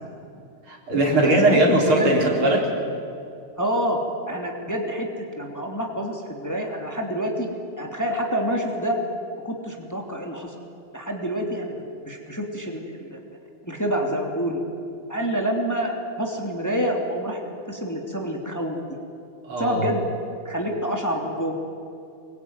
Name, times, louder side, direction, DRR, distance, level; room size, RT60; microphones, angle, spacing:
voice 1, 0.7-2.7 19.4-19.9, right 1 dB, 80° right, 0 dB, 4.8 m, -20 dB
voice 2, 1.2-2.1 3.6-4.0 4.3-7.5 7.8-9.0 9.4-10.5 10.9-13.2 13.7-14.6 15.1-17.4 17.7-18.8 19.6-20.0 20.4-21.5, equal, 10° left, 1 dB, 2.8 m, -27 dB
24.5 x 22.0 x 9.6 m, 2.6 s
omnidirectional pair, 2.3 m